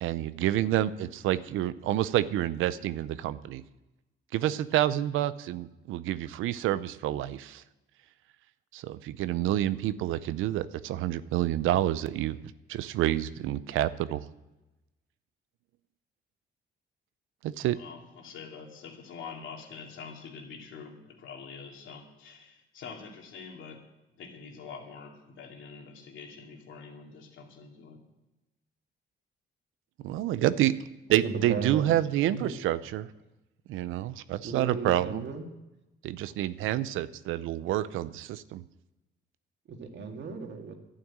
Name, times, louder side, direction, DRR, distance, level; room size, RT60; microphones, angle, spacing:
voice 1, 0.0-3.6 4.3-7.6 8.7-12.4 12.7-14.2 17.4-17.8 30.0-30.7 31.1-33.1 33.7-35.2 36.0-38.6, right 13 dB, 90° right, 15 dB, 0.6 m, -28 dB
voice 2, 17.7-23.8 24.2-28.0, left 5 dB, 75° left, 1 dB, 2.7 m, -45 dB
voice 3, 31.1-31.8 32.3-32.5 34.4-35.5 39.7-40.8, right 5 dB, 65° right, 3 dB, 2.2 m, -35 dB
11.5 x 9.1 x 8.8 m, 1.0 s
cardioid pair, 90°, 20 cm